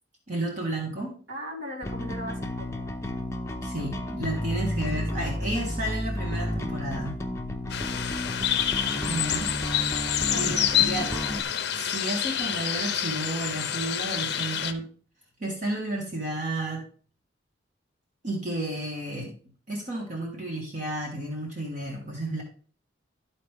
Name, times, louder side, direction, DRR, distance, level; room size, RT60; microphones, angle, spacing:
voice 1, 0.3-1.1 3.6-7.1 9.0-9.5 10.3-11.1 11.7-14.9 15.4-16.8 18.2-19.3 19.7-22.4, right 1 dB, 40° right, -1 dB, 1.5 m, -32 dB
voice 2, 1.3-2.9 4.9-5.5 9.7-11.6, equal, 65° right, -8 dB, 3.4 m, -40 dB
Bass guitar, 1.8-11.4, left 1 dB, 15° left, 0.7 m, -32 dB
sound 1, 7.7-14.7, left 10 dB, 55° left, 0.6 m, -28 dB
12.5 x 4.3 x 3.6 m, 0.42 s
head